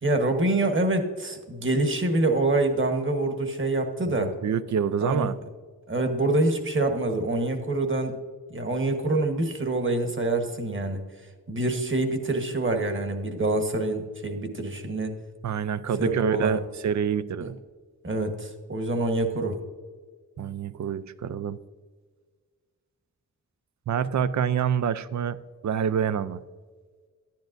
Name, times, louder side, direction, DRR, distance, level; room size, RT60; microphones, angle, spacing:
voice 1, 0.0-4.3 5.0-5.3 5.9-8.1 8.5-11.0 11.5-15.1 16.0-16.6 17.4-17.5 18.0-19.6, right 2 dB, 35° right, 6 dB, 1.2 m, -26 dB
voice 2, 4.1-5.3 15.4-17.5 20.4-21.6 23.9-25.4 25.6-26.4, right 7 dB, 55° right, 15 dB, 0.5 m, -27 dB
10.5 x 10.5 x 2.6 m, 1.5 s
cardioid pair, 75°, 34 cm